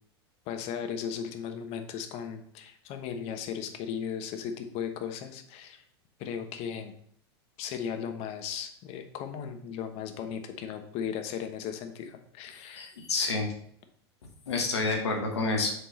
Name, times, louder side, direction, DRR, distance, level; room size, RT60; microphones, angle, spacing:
voice 1, 0.5-5.8 6.2-6.9 7.6-12.9, left 8 dB, 50° left, 7 dB, 1.0 m, -36 dB
voice 2, 12.8-13.5 14.5-15.7, left 3 dB, 85° left, 2 dB, 1.4 m, -28 dB
6.7 x 3.7 x 4.1 m, 0.66 s
hypercardioid pair, 95°, 14 cm